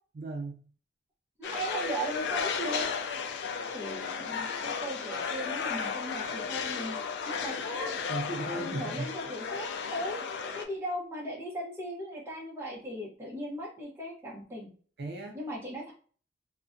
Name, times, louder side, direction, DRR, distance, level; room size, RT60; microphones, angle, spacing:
voice 1, 0.1-0.6 8.1-9.3 15.0-15.4, right 2 dB, 65° right, 2 dB, 0.5 m, -36 dB
sound 1, 1.4-10.6, left 6 dB, 70° left, 0.3 m, -34 dB
voice 2, 1.4-2.9 3.7-7.0 7.3-7.9 8.5-10.2 10.5-14.7 15.3-15.9, right 1 dB, 15° right, -4 dB, 0.6 m, -37 dB
2.4 x 2.1 x 2.5 m, 0.43 s
head